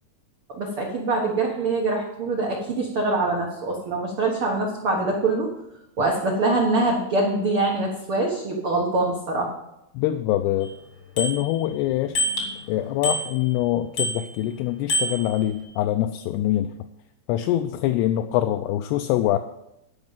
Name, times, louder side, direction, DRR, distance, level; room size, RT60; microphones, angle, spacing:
voice 1, 0.5-5.5 6.0-9.5, right 2 dB, 85° right, -1 dB, 1.2 m, -24 dB
voice 2, 9.9-10.8 11.2-12.2 12.7-16.7 17.3-19.4, left 13 dB, 80° left, 6 dB, 2.5 m, -24 dB
Bicycle bell, 10.6-10.7 11.2-11.8 12.1-12.6 13.0-13.6 14.0-14.5 14.9-15.6, equal, 40° left, 1.0 m, -28 dB
12.0 x 5.3 x 7.4 m, 0.84 s
omnidirectional pair, 4.9 m